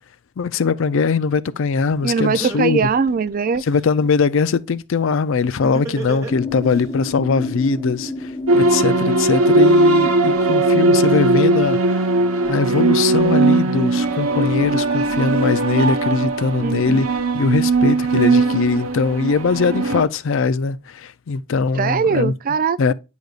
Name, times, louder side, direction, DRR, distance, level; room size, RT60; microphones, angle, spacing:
voice 1, 0.4-2.9 3.6-12.0 12.5-17.1 17.3-22.3 22.8-22.9, left 4 dB, 60° left, 0.4 m, -21 dB
Laughter, 1.9-2.0 2.4-3.9 5.6-6.8, right 3 dB, 15° right, 1.4 m, -31 dB
voice 2, 2.0-3.6 16.6-17.1 21.8-22.9, right 5 dB, 40° right, 0.3 m, -21 dB
sound 1, 6.3-11.6, left 2 dB, 20° left, 0.9 m, -30 dB
sound 2, 8.5-20.0, right 2 dB, 80° right, 0.9 m, -18 dB
9.3 x 5.1 x 2.4 m
head